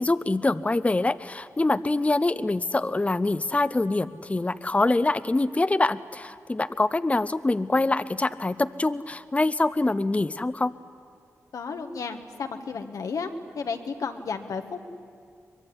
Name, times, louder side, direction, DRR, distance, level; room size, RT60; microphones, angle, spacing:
voice 1, 0.0-10.7, left 2 dB, 25° left, 13 dB, 0.6 m, -25 dB
voice 2, 11.5-13.3 13.5-14.8, left 5 dB, 80° left, 6 dB, 1.6 m, -33 dB
23.5 x 21.5 x 10.0 m, 2.3 s
cardioid pair, 50°, 6 cm